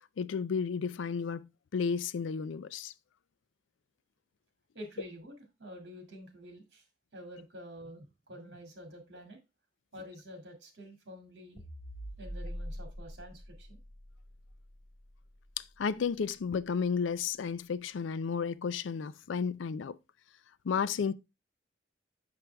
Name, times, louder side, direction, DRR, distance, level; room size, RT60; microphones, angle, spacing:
voice 1, 0.2-1.5 1.7-2.9 15.6-20.0 20.6-21.1, left 6 dB, 85° left, 0.4 m, -32 dB
voice 2, 4.7-6.9 7.1-9.4 9.9-11.6 12.2-13.8, equal, 65° right, 2.2 m, -48 dB
sound 1, 11.6-16.1, equal, 65° left, 1.9 m, -45 dB
6.4 x 5.9 x 3.3 m
head